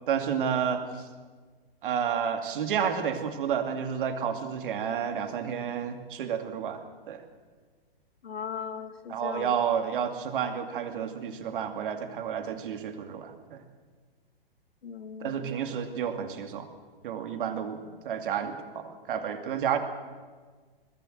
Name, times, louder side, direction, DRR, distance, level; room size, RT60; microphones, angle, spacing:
voice 1, 0.1-1.1 1.8-7.2 9.1-13.6 15.2-16.7 17.0-19.8, right 8 dB, 60° right, 7 dB, 2.4 m, -31 dB
voice 2, 8.2-9.6 14.8-15.6, left 7 dB, 80° left, 11 dB, 1.6 m, -38 dB
21.0 x 16.0 x 7.8 m, 1.5 s
hypercardioid pair, 120°, 30 cm